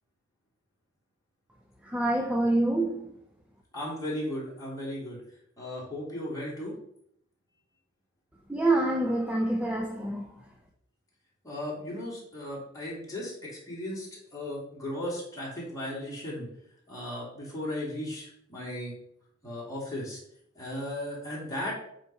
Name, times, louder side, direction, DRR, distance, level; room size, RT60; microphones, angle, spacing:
voice 1, 1.9-3.1 8.5-10.2, right 2 dB, 5° right, 1 dB, 0.6 m, -26 dB
voice 2, 3.7-5.2 5.6-6.7 11.4-16.5 16.9-18.9 19.4-20.2 20.5-21.7, left 1 dB, 20° left, -6 dB, 3.1 m, -36 dB
7.9 x 3.3 x 5.5 m, 0.73 s
head